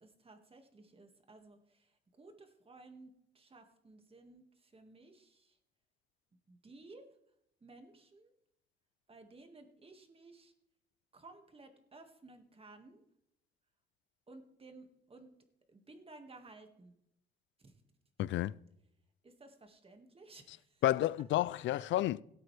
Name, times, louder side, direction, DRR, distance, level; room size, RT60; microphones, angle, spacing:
voice 1, 0.0-5.6 6.5-7.1 7.6-8.3 9.1-10.5 11.1-13.0 14.3-15.3 15.7-16.9 17.6-17.7 19.2-20.8, right 2 dB, 30° right, 1.9 m, -56 dB
voice 2, 18.2-18.5 20.8-22.2, left 14 dB, 70° left, 0.4 m, -30 dB
17.5 x 8.5 x 3.4 m
cardioid pair, 90°, 20 cm